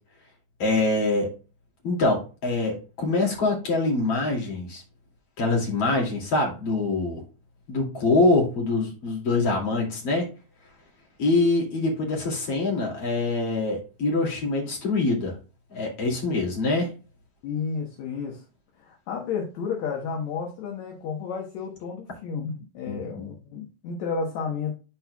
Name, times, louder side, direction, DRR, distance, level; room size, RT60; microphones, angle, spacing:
voice 1, 0.6-1.3 1.8-4.8 5.4-7.2 7.7-10.3 11.2-15.3 15.7-16.9 22.9-23.3, left 2 dB, 50° left, -1 dB, 3.4 m, -24 dB
voice 2, 17.4-18.4 18.8-24.7, left 5 dB, 65° left, 0 dB, 2.4 m, -32 dB
11.5 x 4.3 x 2.3 m, 0.33 s
omnidirectional pair, 3.6 m